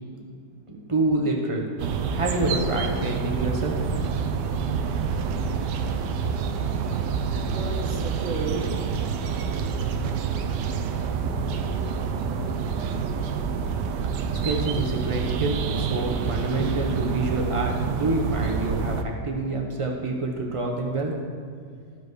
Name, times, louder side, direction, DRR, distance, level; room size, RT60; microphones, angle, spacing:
voice 1, 0.7-1.7 2.1-3.8 14.3-21.2, right 2 dB, 25° right, 0 dB, 0.9 m, -27 dB
sound 1, 1.8-19.0, right 6 dB, 80° right, 1.3 m, -27 dB
voice 2, 7.3-8.9 9.3-13.3, right 2 dB, 55° right, -1 dB, 1.3 m, -38 dB
13.0 x 5.1 x 4.8 m, 2.2 s
omnidirectional pair, 1.8 m